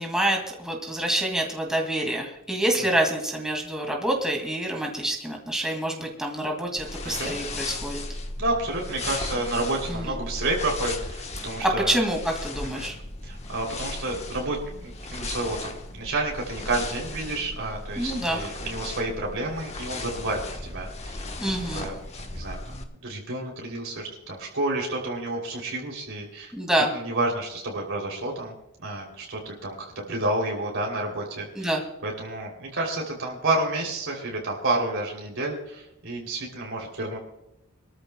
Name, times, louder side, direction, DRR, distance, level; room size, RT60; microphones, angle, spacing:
voice 1, 0.0-8.0 9.9-10.2 11.6-12.9 18.0-18.4 21.4-21.9 26.5-26.9 31.5-31.8, right 1 dB, 5° right, 0 dB, 2.2 m, -27 dB
sound 1, 6.8-22.8, left 2 dB, 30° left, 1.2 m, -36 dB
voice 2, 7.0-7.3 8.4-12.0 12.7-12.9 13.2-21.3 21.7-22.0 22.2-26.5 26.9-28.5 28.8-31.7 32.0-37.2, right 2 dB, 65° right, -1 dB, 3.2 m, -30 dB
24.5 x 13.5 x 2.3 m, 0.86 s
head